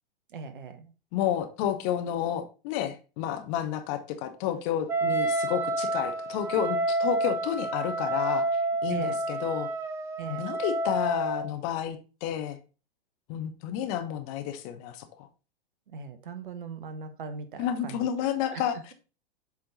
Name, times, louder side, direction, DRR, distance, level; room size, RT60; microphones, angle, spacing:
voice 1, 0.3-0.9 8.9-9.2 10.2-10.5 15.9-18.0 18.5-18.6, right 5 dB, 60° right, 9 dB, 1.0 m, -39 dB
voice 2, 1.1-8.4 8.8-9.7 10.3-12.6 13.3-15.3 17.6-18.9, left 10 dB, 35° left, 8 dB, 0.8 m, -31 dB
Wind instrument woodwind instrument, 4.9-11.5, right 2 dB, 10° right, 0.4 m, -29 dB
7.7 x 3.6 x 3.9 m, 0.34 s
figure-of-eight pair, 100°, 30 cm